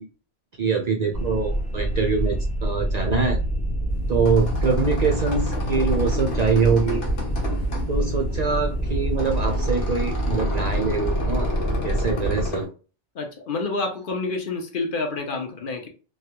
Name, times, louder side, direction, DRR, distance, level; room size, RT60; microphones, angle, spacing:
voice 1, 0.6-3.4 4.1-7.0 7.9-11.5 11.8-12.7, right 5 dB, 60° right, 0.4 m, -24 dB
sound 1, 1.1-12.5, right 1 dB, 10° left, 0.4 m, -26 dB
sound 2, 3.9-12.6, left 2 dB, 85° left, 1.2 m, -32 dB
voice 2, 13.1-15.9, left 3 dB, 55° left, 0.8 m, -28 dB
3.0 x 2.3 x 2.8 m
omnidirectional pair, 1.2 m